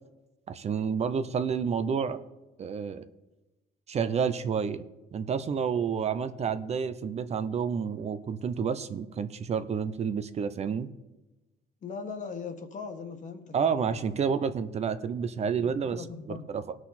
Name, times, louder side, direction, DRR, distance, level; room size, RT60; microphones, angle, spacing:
voice 1, 0.5-2.2 2.6-3.0 3.9-4.8 5.1-10.9 13.5-16.7, right 6 dB, 40° right, 11 dB, 0.6 m, -30 dB
voice 2, 11.8-14.2 15.6-16.5, left 5 dB, 45° left, 6 dB, 1.6 m, -40 dB
18.5 x 6.2 x 4.3 m, 1.1 s
cardioid pair, 110°, 17 cm